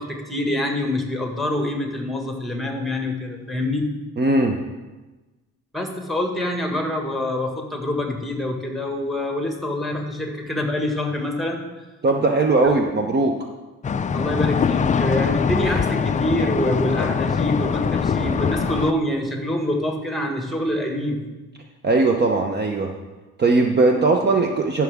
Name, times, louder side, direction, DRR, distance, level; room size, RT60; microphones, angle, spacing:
voice 1, 0.0-3.9 5.7-11.6 12.6-12.7 14.1-21.2, left 1 dB, ahead, 2 dB, 1.7 m, -25 dB
voice 2, 4.2-4.6 12.0-13.3 21.8-22.9 23.4-24.8, right 3 dB, 35° right, 3 dB, 0.8 m, -19 dB
sound 1, 13.8-18.9, left 6 dB, 25° left, 0.4 m, -22 dB
13.0 x 6.0 x 3.6 m, 1.2 s
cardioid pair, 90°, 30 cm